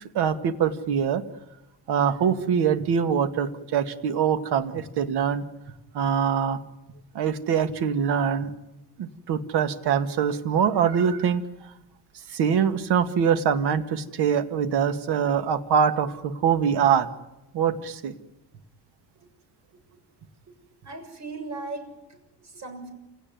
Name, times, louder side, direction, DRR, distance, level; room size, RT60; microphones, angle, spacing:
voice 1, 0.1-1.2 1.9-5.4 5.9-6.6 7.1-8.5 9.0-11.4 12.3-17.1 17.5-18.1, right 7 dB, 70° right, 9 dB, 2.0 m, -23 dB
voice 2, 20.8-22.9, right 3 dB, 40° right, 8 dB, 6.9 m, -38 dB
28.0 x 17.5 x 9.5 m, 0.96 s
cardioid pair, 110°, 41 cm